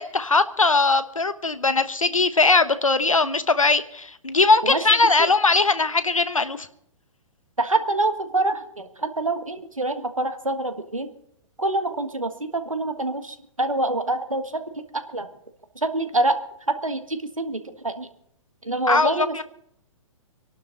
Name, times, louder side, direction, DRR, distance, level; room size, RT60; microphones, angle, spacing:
voice 1, 0.0-6.7 18.9-19.4, left 3 dB, 85° left, 12 dB, 1.2 m, -20 dB
voice 2, 7.6-11.1 11.6-15.3 15.8-16.3 16.7-18.1 18.6-19.4, right 2 dB, 85° right, 8 dB, 1.7 m, -26 dB
25.5 x 12.0 x 3.9 m, 0.71 s
figure-of-eight pair, 115°, 17 cm